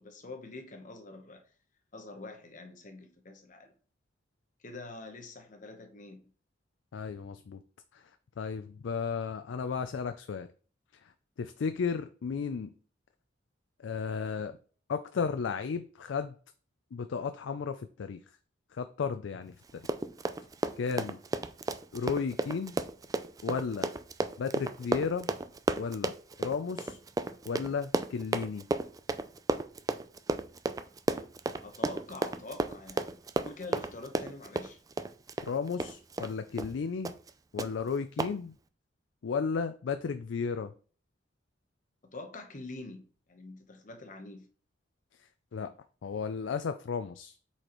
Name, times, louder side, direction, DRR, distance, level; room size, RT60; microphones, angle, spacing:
voice 1, 0.0-1.4 1.9-3.7 4.6-6.2 31.6-33.1 33.4-34.8 42.0-44.5, left 2 dB, 45° left, 1.0 m, -45 dB
voice 2, 6.9-7.6 7.9-8.0 8.4-10.5 11.4-12.7 13.8-14.6 14.9-16.3 16.9-18.2 18.7-19.8 20.8-21.2 21.9-22.7 23.4-23.9 24.4-25.3 25.8-26.1 26.4-27.0 27.5-28.6 35.4-37.1 37.5-38.5 39.2-40.7 45.5-45.7 46.0-47.4, left 5 dB, 90° left, 0.4 m, -34 dB
Run, 19.7-36.3 36.6-36.8 37.1-37.3 37.6-37.7 38.2-38.3, right 2 dB, 20° right, 0.3 m, -33 dB
7.8 x 4.3 x 3.0 m
head